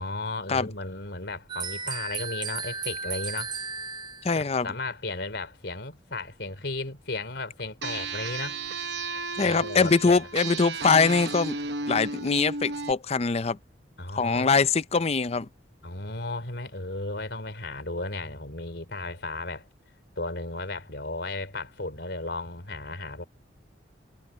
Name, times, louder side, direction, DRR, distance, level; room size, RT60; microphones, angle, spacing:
voice 1, 0.0-3.5 4.4-8.6 9.4-10.3 14.0-14.7 15.8-19.7 20.2-23.3, left 2 dB, 65° left, 4.3 m, -35 dB
sound 1, 1.5-4.3, right 5 dB, 25° right, 0.6 m, -34 dB
voice 2, 4.2-4.7 9.4-11.6 11.9-13.6 14.2-15.5, left 4 dB, 35° left, 0.5 m, -23 dB
sound 2, 7.8-12.9, right 3 dB, 65° right, 1.0 m, -34 dB
head